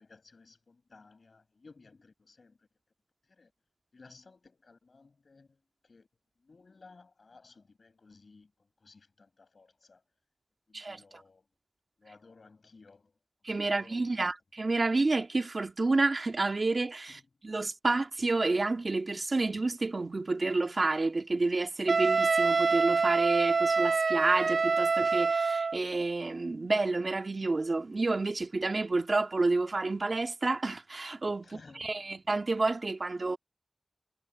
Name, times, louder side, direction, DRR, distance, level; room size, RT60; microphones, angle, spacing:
voice 1, 0.0-2.7 3.2-3.5 3.9-6.1 6.4-8.5 8.8-10.0 10.7-11.5 12.0-13.1 13.5-14.1 17.1-17.2 31.4-32.1, left 4 dB, 80° left, 7.8 m, -57 dB
voice 2, 10.7-11.2 13.4-33.4, right 3 dB, 60° right, 1.8 m, -29 dB
Wind instrument woodwind instrument, 21.9-25.8, right 4 dB, 90° right, 0.4 m, -26 dB
wide cardioid pair, 65°, 0 cm